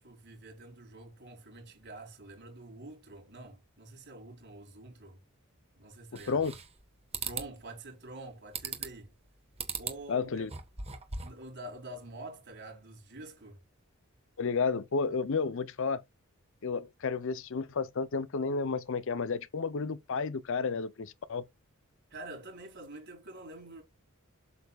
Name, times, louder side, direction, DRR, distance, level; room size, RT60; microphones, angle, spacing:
voice 1, 0.0-5.2 5.8-6.4 7.2-9.1 9.8-10.5 11.2-13.6 22.1-23.8, right 2 dB, 55° right, 4.3 m, -47 dB
sound 1, 6.2-6.8 7.1-7.5 8.5-9.1 9.6-10.0 10.4-11.4, right 6 dB, 30° right, 1.3 m, -38 dB
voice 2, 10.1-10.5 14.4-16.0 16.6-21.4, left 5 dB, 60° left, 0.6 m, -31 dB
8.0 x 7.0 x 2.3 m
head